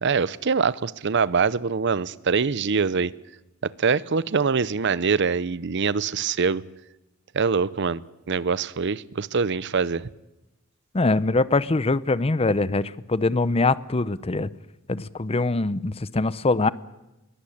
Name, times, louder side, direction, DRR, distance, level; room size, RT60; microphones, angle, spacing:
voice 1, 0.0-3.1 3.6-6.6 7.3-8.0 8.3-10.1, right 5 dB, 60° right, 19 dB, 0.7 m, -24 dB
voice 2, 10.9-14.5 14.9-16.7, left 3 dB, 30° left, 18 dB, 0.7 m, -23 dB
22.5 x 18.0 x 8.6 m, 0.98 s
head